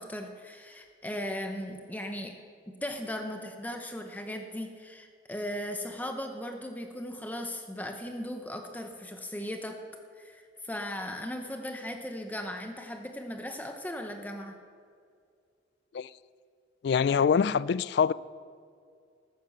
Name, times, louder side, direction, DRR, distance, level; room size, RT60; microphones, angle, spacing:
voice 1, 0.0-2.3 2.8-9.8 10.2-14.6, left 1 dB, 10° left, 0.7 m, -37 dB
voice 2, 16.8-18.1, left 6 dB, 60° left, 0.3 m, -24 dB
14.0 x 9.1 x 6.6 m
head